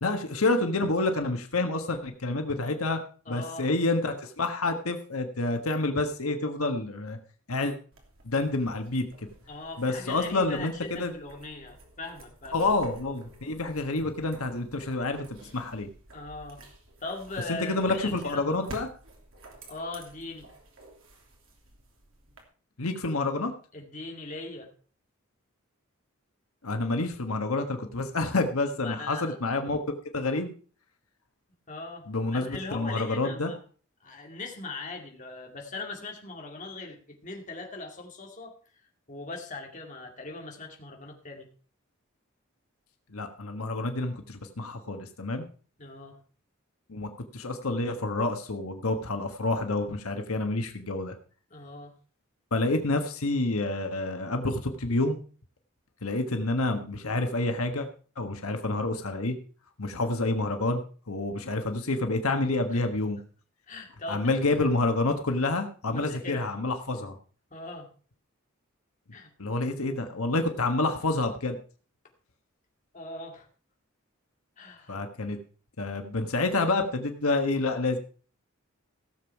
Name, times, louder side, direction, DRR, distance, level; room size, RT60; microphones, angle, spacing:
voice 1, 0.0-3.0 3.3-7.2 7.5-7.7 8.2-9.1 9.8-11.1 12.5-15.9 17.5-18.9 22.8-23.5 26.6-29.8 30.1-30.5 32.1-33.5 43.1-45.4 46.9-51.1 52.5-55.2 56.0-57.9 58.2-59.4 59.8-63.2 64.1-67.1 69.4-71.6 74.9-75.4 75.8-78.0, left 2 dB, 90° left, 5 dB, 1.4 m, -28 dB
voice 2, 3.3-3.7 9.5-12.6 16.1-16.6 17.0-18.7 19.7-20.5 23.7-24.7 28.8-29.3 31.7-33.6 34.0-38.6 39.1-41.5 45.8-46.2 51.5-52.0 62.7-62.9 63.7-64.5 65.9-66.5 67.5-67.9 69.1-69.3 72.9-73.5 74.6-75.0, left 3 dB, 35° left, 1 dB, 2.3 m, -40 dB
sound 1, 7.9-22.4, right 1 dB, 70° right, 3.0 m, -51 dB
16.5 x 7.3 x 4.7 m, 0.40 s
head